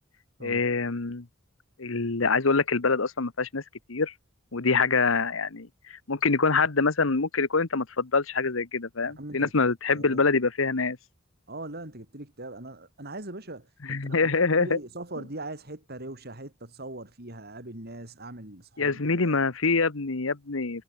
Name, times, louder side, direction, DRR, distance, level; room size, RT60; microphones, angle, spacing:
voice 1, 0.4-1.3 1.8-3.6 3.9-4.1 4.5-11.0 13.9-14.8 18.8-20.8, left 4 dB, 85° left, 1.3 m, -25 dB
voice 2, 9.2-10.3 11.5-19.4, right 2 dB, 50° right, 4.2 m, -41 dB
head